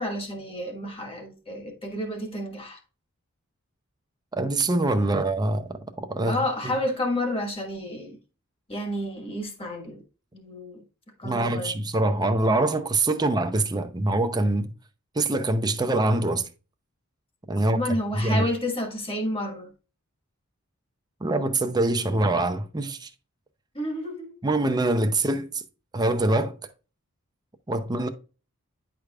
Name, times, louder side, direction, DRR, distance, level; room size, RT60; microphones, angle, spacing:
voice 1, 0.0-2.8 6.2-8.2 8.7-10.0 10.3-10.8 11.2-11.7 17.7-19.7 23.7-24.4, left 1 dB, 25° left, 1.5 m, -30 dB
voice 2, 4.3-6.4 11.2-14.7 15.2-16.5 17.5-17.8 18.1-18.5 21.2-23.1 24.4-25.6 25.9-26.5 27.7-28.1, right 2 dB, 20° right, 0.6 m, -24 dB
9.5 x 4.8 x 2.4 m
head